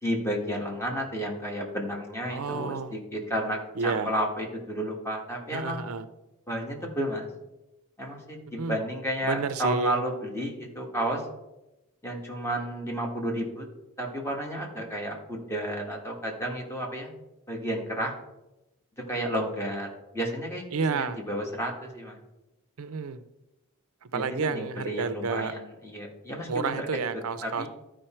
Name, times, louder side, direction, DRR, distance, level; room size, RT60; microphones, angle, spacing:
voice 1, 0.0-5.9 6.5-7.3 8.0-11.2 12.0-13.6 14.0-17.1 17.5-18.1 19.1-19.9 20.1-20.6 20.9-22.2 24.1-26.9 27.4-27.7, equal, 10° left, 0 dB, 1.7 m, -32 dB
voice 2, 2.3-3.0 3.8-4.1 5.5-6.1 8.6-8.8 9.2-10.0 20.7-21.2 22.8-23.2 24.0-25.5 26.5-27.7, right 5 dB, 75° right, 13 dB, 0.5 m, -30 dB
12.5 x 5.0 x 4.4 m, 0.97 s
head